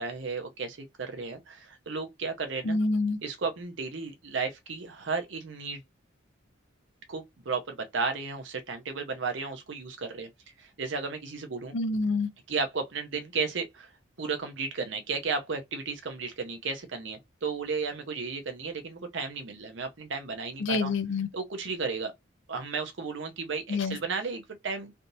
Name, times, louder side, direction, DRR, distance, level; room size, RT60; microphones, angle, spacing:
voice 1, 0.0-2.8 3.2-5.8 7.1-10.3 10.6-11.7 12.5-13.9 14.2-20.9 21.3-22.1 22.5-24.9, right 4 dB, 65° right, 0.7 m, -34 dB
voice 2, 2.6-3.2 11.7-12.3 20.6-21.3 23.7-24.0, left 3 dB, 65° left, 0.5 m, -27 dB
3.4 x 2.7 x 2.7 m
head